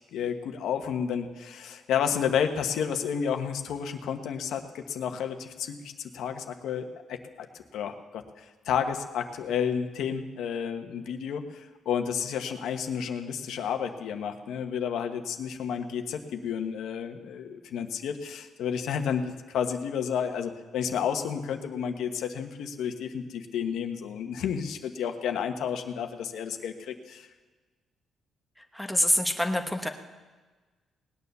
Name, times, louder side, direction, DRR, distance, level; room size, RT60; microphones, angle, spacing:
voice 1, 0.1-7.5 7.7-27.3, left 7 dB, 80° left, 6 dB, 1.3 m, -31 dB
voice 2, 28.6-29.9, left 1 dB, ahead, 4 dB, 1.2 m, -26 dB
19.0 x 9.6 x 6.8 m, 1.3 s
cardioid pair, 155°, 0 cm